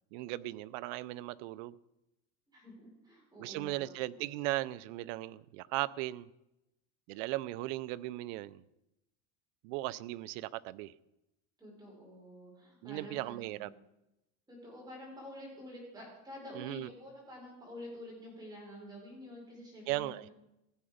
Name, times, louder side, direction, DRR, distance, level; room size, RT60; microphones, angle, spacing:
voice 1, 0.1-1.7 3.4-6.3 7.1-8.6 9.6-10.9 12.8-13.7 16.5-16.9 19.9-20.3, right 17 dB, 70° right, 0.6 m, -37 dB
voice 2, 2.5-4.2 11.6-13.7 14.5-20.3, left 1 dB, 10° right, 4.9 m, -49 dB
16.0 x 8.8 x 5.0 m
cardioid pair, 150°, 39 cm